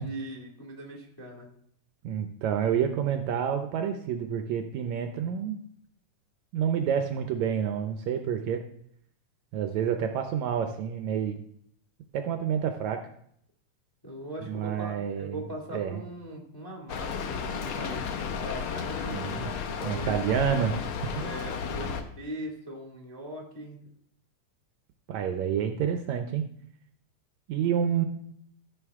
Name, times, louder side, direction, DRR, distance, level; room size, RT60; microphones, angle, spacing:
voice 1, 0.0-1.5 14.0-20.4 21.2-23.8, right 1 dB, 10° left, -1 dB, 1.3 m, -40 dB
voice 2, 2.0-5.6 6.5-8.6 9.5-11.4 12.1-13.0 14.4-15.4 15.7-16.0 19.1-19.5 19.8-20.8 21.0-21.1 25.1-26.4 27.5-28.1, right 8 dB, 75° right, 6 dB, 1.8 m, -28 dB
Rain, 16.9-22.0, left 6 dB, 90° left, 1.1 m, -33 dB
14.5 x 6.4 x 3.6 m, 0.67 s
omnidirectional pair, 3.6 m